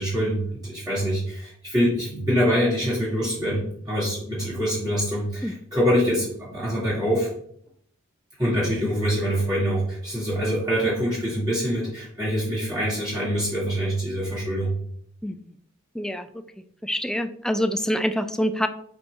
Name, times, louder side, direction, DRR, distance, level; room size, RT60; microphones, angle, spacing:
voice 1, 0.0-7.3 8.4-14.7, equal, 20° right, -10 dB, 2.7 m, -25 dB
voice 2, 15.9-16.3 16.8-18.7, equal, 5° left, 9 dB, 0.4 m, -25 dB
5.1 x 4.5 x 4.7 m, 0.65 s
head